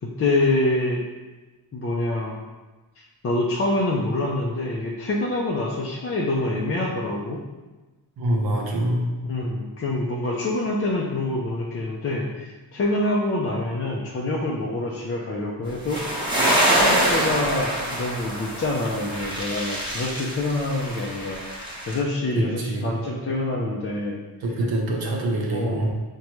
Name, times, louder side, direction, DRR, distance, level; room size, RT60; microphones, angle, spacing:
voice 1, 0.0-1.0 1.7-2.4 3.0-7.4 9.3-21.4 21.9-24.2 25.5-25.9, left 2 dB, 30° left, -3 dB, 0.4 m, -26 dB
voice 2, 8.2-9.2 22.4-23.0 24.4-25.9, right 1 dB, 50° right, 0 dB, 0.9 m, -25 dB
sound 1, 15.9-22.0, right 1 dB, 10° right, 1.1 m, -25 dB
5.0 x 2.2 x 3.0 m, 1.2 s
cardioid pair, 100°, 46 cm